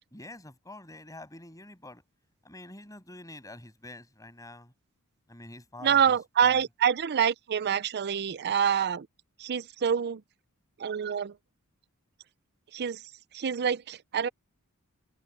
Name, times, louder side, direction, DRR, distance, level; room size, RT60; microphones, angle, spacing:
voice 1, 0.1-2.0 2.4-4.7 5.3-6.6, left 2 dB, 15° left, 7.7 m, -46 dB
voice 2, 5.8-9.1 9.4-10.2 10.8-11.3 12.7-13.0 13.3-14.3, right 8 dB, 50° right, 0.5 m, -26 dB
head